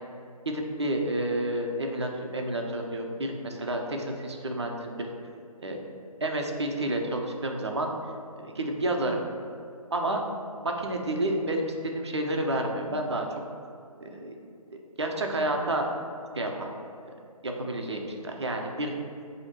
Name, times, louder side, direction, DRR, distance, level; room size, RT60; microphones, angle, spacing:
voice 1, 0.4-5.1 5.6-5.8 6.2-7.9 8.4-9.2 9.9-10.2 10.6-13.3 14.0-14.4 15.0-15.9 16.3-16.7 17.4-18.9, right 1 dB, 45° right, 2 dB, 0.5 m, -30 dB
5.6 x 2.8 x 2.9 m, 2.4 s
figure-of-eight pair, 150°, 19 cm